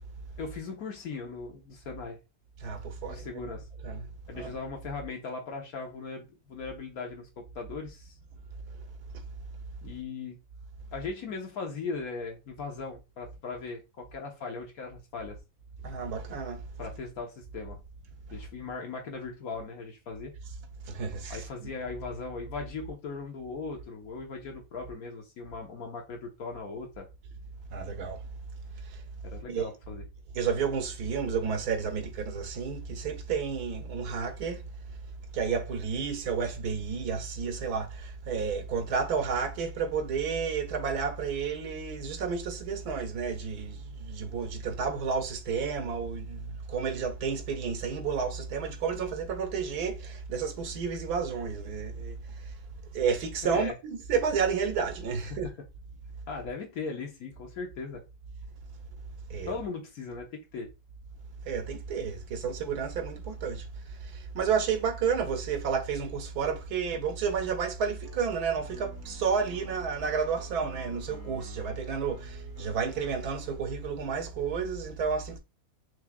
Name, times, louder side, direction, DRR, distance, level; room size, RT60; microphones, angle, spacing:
voice 1, 0.4-2.2 3.1-3.7 4.3-8.1 9.8-10.3 10.9-15.4 16.8-17.8 18.3-20.3 21.3-27.1 29.2-30.0 53.4-53.7 55.4-55.5 56.3-58.0 59.5-60.7, left 4 dB, 70° left, 1.6 m, -38 dB
voice 2, 2.6-3.5 3.8-4.1 4.3-4.6 15.8-16.6 20.9-21.7 27.7-28.2 29.5-29.6 30.3-34.6 35.3-52.1 52.9-55.5 59.3-59.6 61.5-63.6 64.3-75.4, right 6 dB, 90° right, 1.4 m, -31 dB
sound 1, 68.0-73.6, left 2 dB, 20° left, 0.5 m, -51 dB
4.7 x 3.3 x 2.3 m
omnidirectional pair, 1.6 m